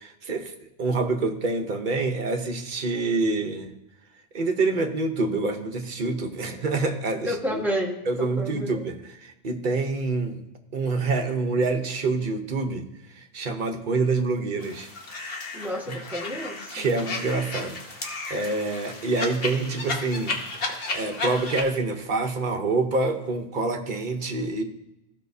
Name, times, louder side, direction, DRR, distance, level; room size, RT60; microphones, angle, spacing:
voice 1, 0.0-3.7 4.3-7.6 8.0-10.4 10.7-12.9 13.2-14.9 15.2-15.3 15.9-16.0 16.7-24.6, right 3 dB, 50° right, 4 dB, 1.0 m, -27 dB
voice 2, 7.3-8.8 15.5-16.9, equal, ahead, -3 dB, 1.4 m, -30 dB
sound 1, 14.6-21.6, left 3 dB, 60° left, 1.2 m, -33 dB
14.5 x 5.4 x 2.7 m, 0.92 s
omnidirectional pair, 1.1 m